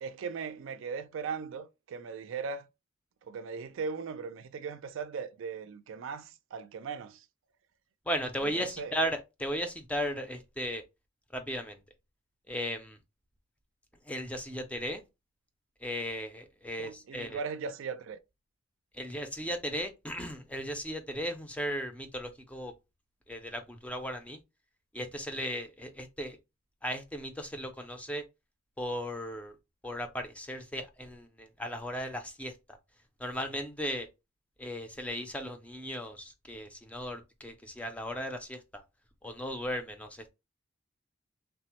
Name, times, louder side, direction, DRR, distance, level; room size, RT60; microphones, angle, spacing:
voice 1, 0.0-2.7 3.3-7.2 8.6-8.9 16.8-18.2, right 5 dB, 75° right, 0.3 m, -38 dB
voice 2, 8.1-10.8 11.3-11.8 12.5-13.0 14.1-15.0 15.8-17.4 18.9-22.7 23.3-24.4 24.9-26.4 26.8-28.2 28.8-29.6 29.8-32.5 33.2-34.1 34.6-38.8 39.2-40.3, equal, 5° left, 0.4 m, -36 dB
3.3 x 2.0 x 2.9 m
head